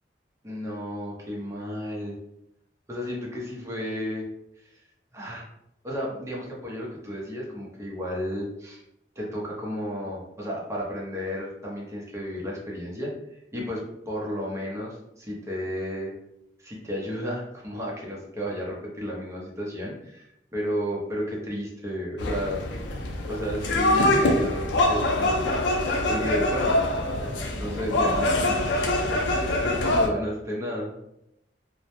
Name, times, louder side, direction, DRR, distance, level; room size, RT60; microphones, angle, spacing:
voice 1, 0.4-2.2 2.9-4.3 4.7-4.8 5.1-5.5 5.8-8.8 9.2-16.1 16.6-22.6 23.3-26.8 27.6-30.9, equal, 15° right, -3 dB, 0.6 m, -33 dB
sound 1, 22.2-30.1, left 1 dB, 85° left, 0.4 m, -24 dB
2.1 x 2.0 x 2.9 m, 0.83 s
head